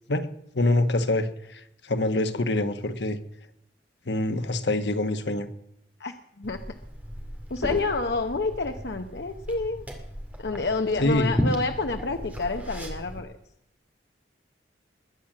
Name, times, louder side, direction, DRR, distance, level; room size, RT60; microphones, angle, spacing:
voice 1, 0.5-3.2 4.1-5.5 11.0-11.5, left 1 dB, 85° left, 9 dB, 1.3 m, -25 dB
voice 2, 6.0-6.6 7.5-9.9 10.4-13.3, left 3 dB, 70° left, 6 dB, 0.9 m, -28 dB
Liquid, 6.4-13.2, equal, 10° right, 2.5 m, -35 dB
21.0 x 9.0 x 7.5 m, 0.79 s
head